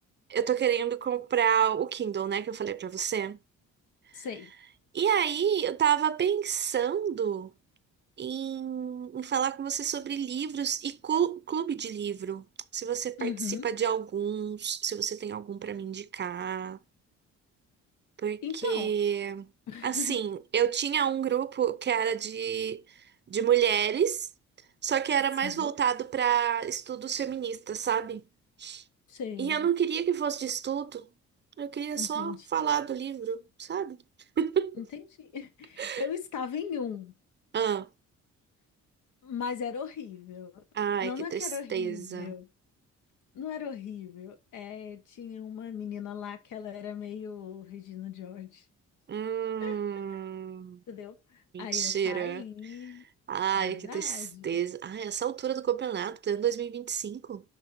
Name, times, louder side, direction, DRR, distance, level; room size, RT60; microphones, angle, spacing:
voice 1, 0.3-3.4 4.2-4.3 4.9-7.5 8.2-12.5 12.7-16.8 18.2-19.5 19.8-22.8 23.3-24.3 24.8-28.2 28.6-28.8 29.4-31.1 31.6-34.0 34.4-34.8 35.8-36.0 37.5-37.9 40.7-42.3 49.1-50.8 51.5-52.4 53.3-57.4, right 8 dB, 35° right, 0.5 m, -29 dB
voice 2, 4.1-4.5 13.2-13.7 18.4-18.9 19.7-20.2 25.4-25.7 29.1-29.7 31.9-32.5 34.7-37.1 39.2-40.6 41.0-42.5 43.3-48.6 49.6-49.8 50.9-53.0 53.5-54.5, left 7 dB, 80° left, 1.2 m, -38 dB
11.0 x 4.4 x 2.6 m
cardioid pair, 90°, 30 cm